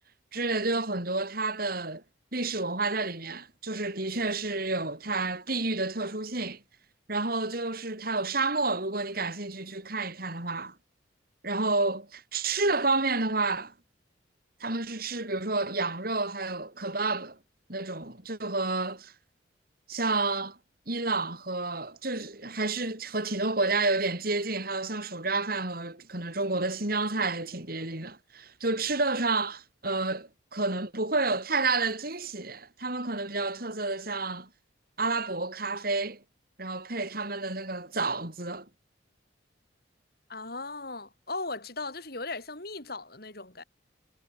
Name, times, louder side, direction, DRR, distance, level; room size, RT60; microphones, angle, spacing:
voice 1, 0.3-2.0 2.3-6.6 7.1-10.7 11.4-13.7 14.6-17.4 17.7-19.1 19.9-20.6 20.9-34.5 35.0-36.2 36.6-38.7, right 3 dB, 50° right, 4.9 m, -30 dB
voice 2, 40.3-43.6, left 3 dB, 55° left, 5.9 m, -37 dB
head